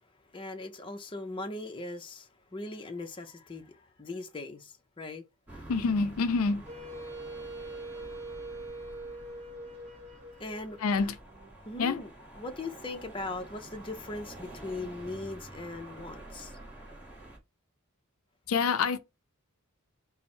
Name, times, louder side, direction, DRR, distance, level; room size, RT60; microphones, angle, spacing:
voice 1, 0.3-5.2 5.5-5.6 10.4-11.1 11.7-12.1 12.4-16.6, left 2 dB, 25° left, 0.6 m, -40 dB
sound 1, 5.5-17.4, right 1 dB, 5° right, 1.1 m, -48 dB
voice 2, 5.7-6.6 10.8-11.1 11.8-12.0 18.5-19.0, left 4 dB, 80° left, 0.4 m, -26 dB
Wind instrument woodwind instrument, 6.6-11.6, right 1 dB, 35° right, 1.3 m, -43 dB
4.3 x 2.0 x 4.2 m
head